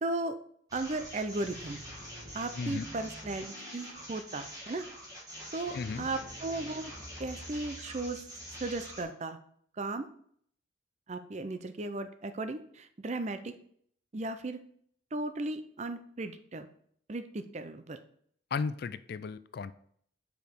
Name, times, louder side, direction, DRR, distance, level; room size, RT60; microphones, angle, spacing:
voice 1, 0.0-0.4 0.7-1.8 2.3-4.9 5.5-6.9 7.2-8.2 8.5-9.4 9.8-10.1 11.1-13.5 14.1-14.6 15.1-16.7 17.1-18.0, right 2 dB, 35° right, 10 dB, 0.5 m, -36 dB
sound 1, 0.7-9.0, equal, 20° right, 1.5 m, -45 dB
voice 2, 5.7-6.1 18.5-19.7, left 5 dB, 50° left, 14 dB, 0.3 m, -35 dB
5.2 x 4.9 x 4.5 m, 0.63 s
head